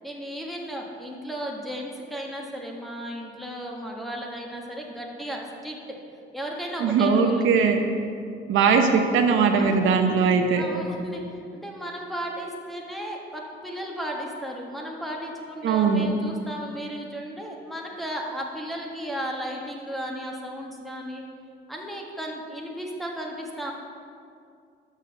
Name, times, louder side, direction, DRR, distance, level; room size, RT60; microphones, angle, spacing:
voice 1, 0.0-5.8 6.3-7.5 9.5-10.1 10.5-21.2 21.7-23.7, equal, ahead, -1 dB, 1.4 m, -35 dB
voice 2, 6.8-7.8 8.5-10.6 15.6-16.1, right 5 dB, 80° right, 4 dB, 0.8 m, -20 dB
6.4 x 6.3 x 6.4 m, 2.4 s
cardioid pair, 90°, 20 cm